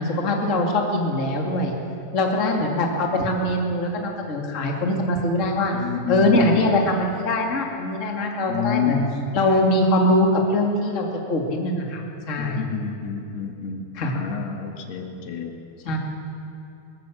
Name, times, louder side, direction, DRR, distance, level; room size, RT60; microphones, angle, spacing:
voice 1, 0.0-1.7 2.1-5.7 6.1-9.0 9.3-12.6 13.9-14.1 15.9-16.0, left 1 dB, 25° left, 1 dB, 2.0 m, -22 dB
voice 2, 5.7-6.5 8.5-9.1 12.4-13.9 14.1-15.5, left 7 dB, 85° left, 4 dB, 3.7 m, -29 dB
21.5 x 19.0 x 7.4 m, 2.9 s
omnidirectional pair, 4.5 m